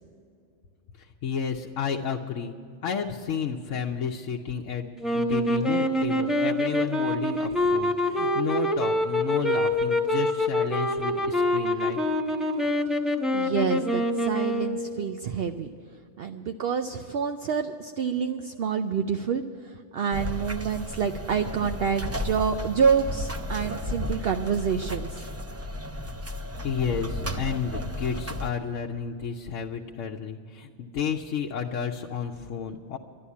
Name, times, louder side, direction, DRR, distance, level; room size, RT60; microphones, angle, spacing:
voice 1, 1.2-2.5 2.8-12.0 26.6-33.0, left 6 dB, 85° left, 0 dB, 1.1 m, -31 dB
sound 1, 5.0-15.0, left 1 dB, ahead, 0.9 m, -25 dB
voice 2, 13.3-15.7 16.2-25.2, right 6 dB, 60° right, 6 dB, 0.7 m, -27 dB
sound 2, 20.1-28.5, left 1 dB, 20° right, 0.5 m, -34 dB
11.5 x 11.5 x 8.3 m, 2.3 s
omnidirectional pair, 1.3 m